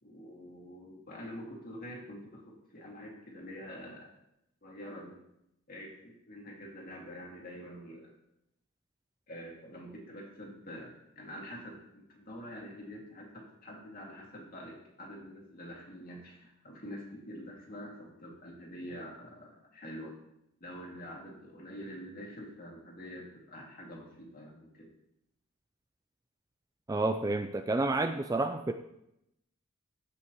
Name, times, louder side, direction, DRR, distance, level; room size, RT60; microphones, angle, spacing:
voice 1, 0.0-4.1 4.6-5.2 5.7-8.1 9.3-20.1 20.6-24.9, equal, 45° left, -2 dB, 2.3 m, -46 dB
voice 2, 26.9-28.7, right 2 dB, 15° right, 8 dB, 0.3 m, -29 dB
16.0 x 5.7 x 3.0 m, 0.82 s
head